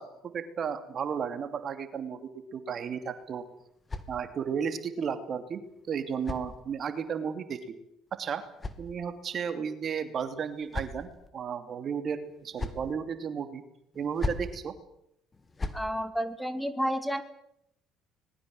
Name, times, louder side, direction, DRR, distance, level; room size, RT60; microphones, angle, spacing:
voice 1, 0.0-3.4 4.1-5.6 5.9-7.7 8.2-8.4 8.8-13.6 13.9-14.7, right 7 dB, 50° right, 9 dB, 2.8 m, -34 dB
sound 1, 3.0-4.6 5.6-7.1 8.1-9.4 10.2-11.3 12.2-12.9 13.9-14.6 15.3-15.9, left 2 dB, 25° left, 2.8 m, -39 dB
voice 2, 15.7-17.2, equal, ahead, 11 dB, 2.4 m, -30 dB
25.5 x 20.5 x 7.8 m, 0.77 s
hypercardioid pair, 65°, 0 cm